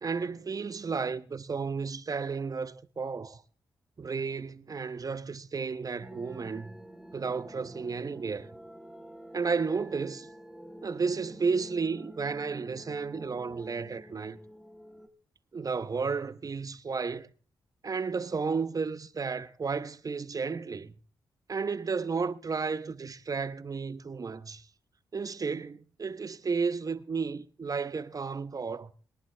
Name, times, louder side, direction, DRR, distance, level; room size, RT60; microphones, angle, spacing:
voice 1, 0.0-3.4 4.0-6.7 7.1-8.5 9.3-10.3 10.8-14.4 15.5-17.3 17.8-20.9 21.5-24.6 25.1-28.9, right 5 dB, 45° right, 0.9 m, -33 dB
sound 1, 6.0-15.1, equal, 5° right, 1.3 m, -49 dB
22.0 x 10.5 x 3.4 m
supercardioid pair, 50°, 9 cm